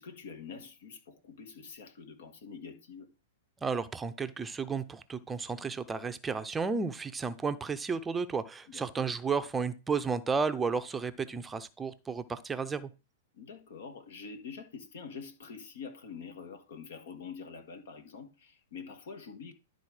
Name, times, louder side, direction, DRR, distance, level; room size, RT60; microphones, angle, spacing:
voice 1, 0.0-3.1 8.7-9.1 13.3-19.5, left 5 dB, 65° left, 1.7 m, -46 dB
voice 2, 3.6-12.9, right 5 dB, 15° right, 0.6 m, -33 dB
11.5 x 4.0 x 4.9 m
hypercardioid pair, 110°, 0 cm